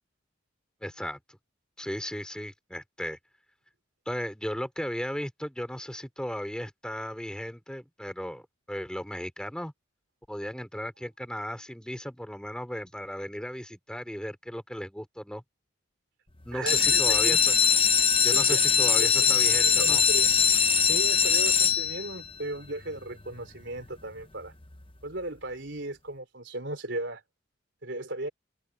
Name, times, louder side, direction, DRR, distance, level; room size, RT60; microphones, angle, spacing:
voice 1, 0.8-1.2 1.8-3.2 4.1-8.4 8.7-9.7 10.3-15.4 16.4-17.5 18.2-20.0, equal, 5° left, 4.5 m, -36 dB
sound 1, 16.5-22.3 22.9-23.4 23.8-23.9 24.1-24.2 24.6-24.8, left 6 dB, 25° left, 1.0 m, -22 dB
voice 2, 16.5-17.4 18.3-20.5 20.8-24.5 25.0-27.2 27.8-28.3, right 2 dB, 60° right, 4.1 m, -36 dB
head